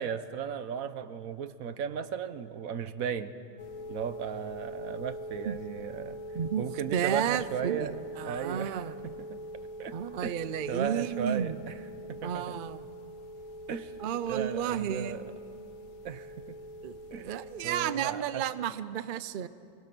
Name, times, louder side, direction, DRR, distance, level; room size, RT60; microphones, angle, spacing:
voice 1, 0.0-3.3 3.9-6.2 6.6-8.0 8.2-10.0 10.2-11.8 12.1-12.6 13.7-15.3 16.0-16.6 17.1-17.4 17.6-18.4, right 7 dB, 80° right, 12 dB, 1.3 m, -36 dB
sound 1, 3.6-17.7, equal, 80° left, 1.4 m, -43 dB
voice 2, 6.3-8.9 9.9-11.5 12.2-12.8 14.0-15.2 16.8-17.0 17.2-19.5, right 9 dB, 50° right, 14 dB, 0.6 m, -32 dB
25.0 x 22.0 x 6.1 m, 2.6 s
omnidirectional pair, 1.5 m